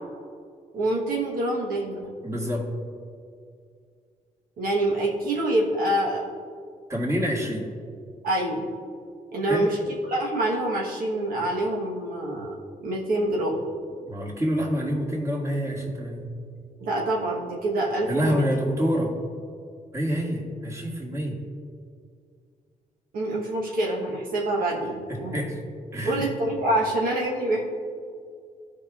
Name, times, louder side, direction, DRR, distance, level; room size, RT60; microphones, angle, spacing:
voice 1, 0.7-2.1 4.6-6.2 8.2-8.7 9.3-12.5 12.8-13.6 16.8-18.4 23.1-25.5 26.0-27.6, right 1 dB, 80° right, -2 dB, 1.2 m, -26 dB
voice 2, 2.2-2.7 6.9-7.7 9.5-9.7 14.1-16.3 18.0-19.1 19.9-21.4 25.1-25.6 25.9-26.3, equal, 20° right, -3 dB, 2.0 m, -27 dB
14.5 x 5.0 x 2.4 m, 2.2 s
cardioid pair, 75°, 15 cm